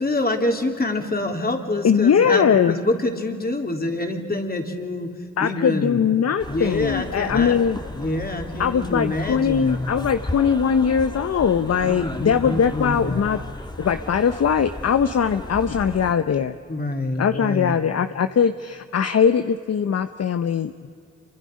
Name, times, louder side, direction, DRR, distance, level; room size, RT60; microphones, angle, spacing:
voice 1, 0.0-5.1 5.4-6.0 6.5-7.6 7.9-9.9 11.8-13.2 16.7-17.8, left 2 dB, 30° left, 3 dB, 3.4 m, -26 dB
voice 2, 1.8-2.7 5.4-7.8 8.6-13.4 13.8-16.5 17.2-20.9, left 7 dB, 55° left, 10 dB, 0.8 m, -21 dB
sound 1, 6.4-16.1, left 1 dB, 15° left, 1.9 m, -35 dB
27.5 x 24.5 x 5.3 m, 2.3 s
cardioid pair, 55°, 30 cm